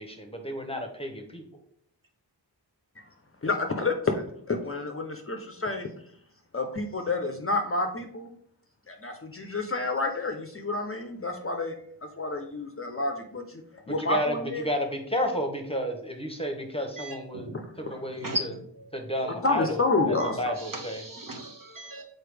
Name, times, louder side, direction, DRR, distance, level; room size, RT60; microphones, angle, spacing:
voice 1, 0.0-1.4 14.0-18.5 18.9-21.0, equal, 15° left, 3 dB, 1.0 m, -32 dB
voice 2, 3.4-5.9 6.5-8.3 8.9-11.8 12.2-13.6 13.9-14.7 17.5-17.6 19.3-20.4, left 3 dB, 30° left, 5 dB, 0.6 m, -29 dB
voice 3, 17.0-17.5 18.2-18.4 18.8-18.9 20.7-22.0, right 1 dB, 50° right, 2 dB, 1.3 m, -36 dB
6.8 x 4.1 x 3.3 m, 0.65 s
wide cardioid pair, 95°, 42 cm